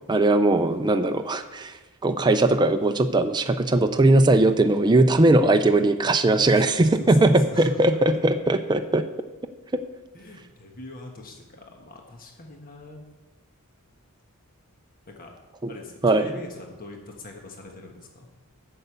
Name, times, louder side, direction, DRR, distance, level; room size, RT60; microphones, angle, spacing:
voice 1, 0.1-1.7 2.0-9.0 9.7-9.8 15.6-15.7 16.0-16.3, right 2 dB, 20° right, 7 dB, 0.5 m, -19 dB
voice 2, 6.6-8.0 10.1-13.1 15.1-15.3 15.7-18.3, left 2 dB, 40° left, 1 dB, 1.5 m, -42 dB
8.0 x 6.7 x 8.0 m, 1.2 s
head